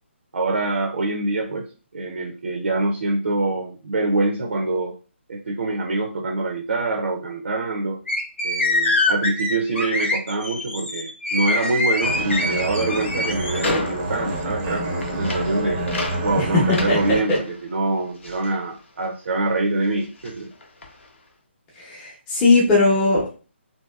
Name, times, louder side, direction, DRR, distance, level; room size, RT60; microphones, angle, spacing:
voice 1, 0.3-5.0 5.3-8.0 8.4-15.8 16.2-20.5, right 2 dB, 75° right, 3 dB, 0.5 m, -25 dB
sound 1, 8.1-13.7, left 2 dB, 90° left, 1.2 m, -24 dB
sound 2, 12.0-19.5 19.7-21.2, left 2 dB, 75° left, 0.8 m, -34 dB
sound 3, 12.0-17.2, right 1 dB, 20° right, 0.6 m, -28 dB
voice 2, 16.9-17.4 21.8-23.3, left 3 dB, 15° left, -6 dB, 0.8 m, -19 dB
2.8 x 2.7 x 2.3 m, 0.35 s
figure-of-eight pair, 150°, 7 cm